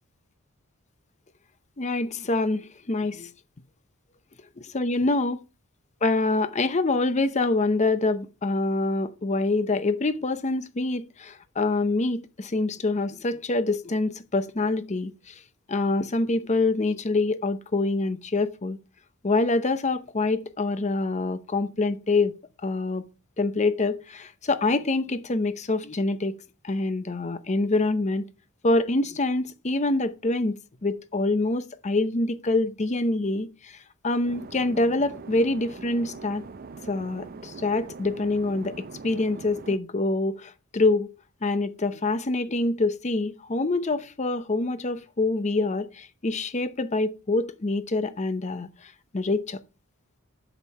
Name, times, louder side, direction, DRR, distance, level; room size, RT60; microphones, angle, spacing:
voice 1, 1.8-3.3 4.7-5.4 6.0-15.4 15.7-18.8 19.2-22.4 22.6-23.1 23.4-26.4 26.6-28.2 28.6-30.6 30.8-33.8 34.0-36.4 36.9-41.1 41.4-49.6, left 2 dB, 35° left, 0.7 m, -25 dB
sound 1, 34.2-39.8, right 4 dB, 40° right, 0.5 m, -42 dB
7.9 x 7.2 x 5.6 m
head